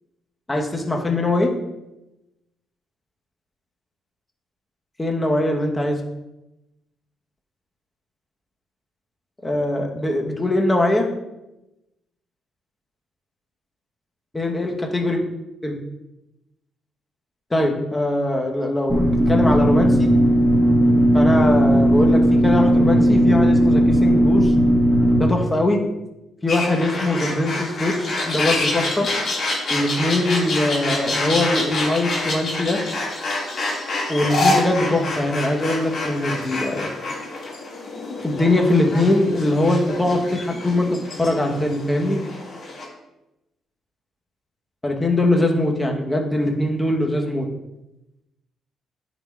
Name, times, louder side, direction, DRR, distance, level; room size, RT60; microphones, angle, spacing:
voice 1, 0.5-1.5 5.0-6.0 9.4-11.1 14.3-15.2 15.6-15.7 17.5-20.1 21.1-24.5 25.1-25.8 26.4-29.1 29.7-32.8 34.1-36.9 38.2-42.2 44.8-47.5, left 1 dB, 15° left, 1 dB, 1.1 m, -21 dB
sound 1, 18.9-25.3, equal, 10° right, 1.6 m, -16 dB
sound 2, 26.5-42.9, left 2 dB, 55° left, 2.1 m, -27 dB
10.5 x 4.0 x 2.4 m, 0.94 s
cardioid pair, 90°, 0 cm